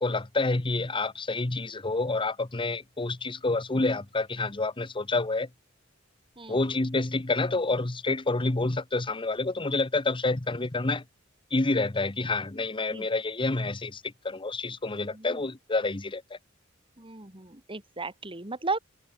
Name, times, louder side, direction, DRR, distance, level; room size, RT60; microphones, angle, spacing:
voice 1, 0.0-5.5 6.5-11.0 11.5-16.2, left 2 dB, 25° left, 1.0 m, -28 dB
voice 2, 17.0-18.8, right 3 dB, 25° right, 3.6 m, -35 dB
head